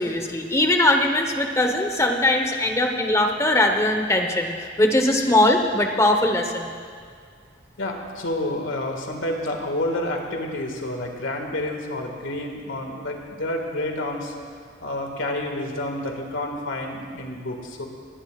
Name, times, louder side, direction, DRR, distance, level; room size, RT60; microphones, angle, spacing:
voice 1, 0.0-4.5 4.8-6.7, left 1 dB, 15° left, 4 dB, 1.1 m, -20 dB
voice 2, 7.8-14.3 14.8-17.9, left 1 dB, 85° left, 2 dB, 2.0 m, -29 dB
21.0 x 16.5 x 2.5 m, 2.1 s
head